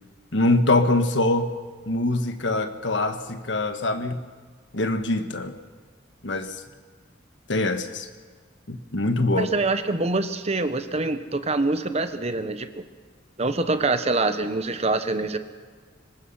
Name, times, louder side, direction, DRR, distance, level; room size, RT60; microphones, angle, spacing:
voice 1, 0.3-1.5 1.9-4.2 4.7-5.5 6.2-6.6 7.5-8.1 8.7-9.5, left 2 dB, 70° left, 8 dB, 1.5 m, -23 dB
voice 2, 9.4-12.8 13.4-15.4, right 3 dB, 35° right, 10 dB, 1.1 m, -25 dB
24.0 x 20.5 x 5.7 m, 1.6 s
head